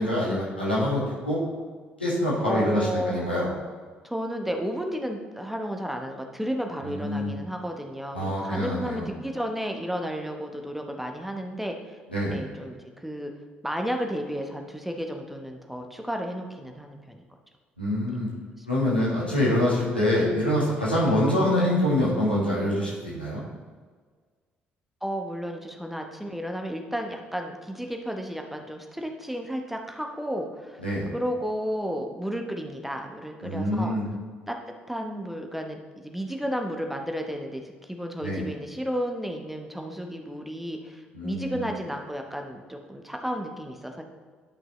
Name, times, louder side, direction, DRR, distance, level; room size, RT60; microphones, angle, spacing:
voice 1, 0.0-1.4 2.0-3.5 6.8-7.3 8.1-9.1 12.1-12.4 17.8-18.3 18.7-23.4 30.8-31.1 33.4-34.0 38.2-38.5 41.1-41.6, left 1 dB, 85° left, -7 dB, 1.8 m, -25 dB
voice 2, 2.4-3.3 4.0-12.0 12.3-13.3 13.6-17.2 18.6-18.7 20.0-20.1 21.0-21.2 25.0-30.8 31.1-33.9 34.5-34.6 34.9-44.0, equal, 5° right, 3 dB, 1.0 m, -32 dB
11.0 x 6.0 x 3.1 m, 1.6 s
figure-of-eight pair, 45°, 5 cm